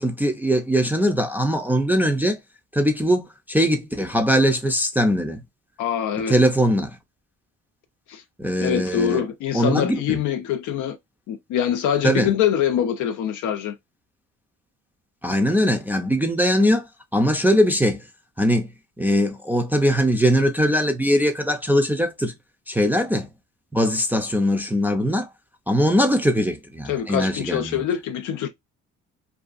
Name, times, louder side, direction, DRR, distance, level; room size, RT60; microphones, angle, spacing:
voice 1, 0.0-2.4 2.7-5.4 6.3-7.0 8.4-9.2 9.5-10.2 12.0-12.3 15.2-18.0 18.4-18.7 19.0-22.3 22.7-23.3 23.7-25.3 25.7-27.8, equal, 5° right, 0.5 m, -21 dB
voice 2, 5.8-6.4 8.1-8.2 8.6-11.0 11.3-13.8 26.9-28.5, left 9 dB, 75° left, 0.5 m, -24 dB
2.6 x 2.3 x 2.4 m
cardioid pair, 90°, 30 cm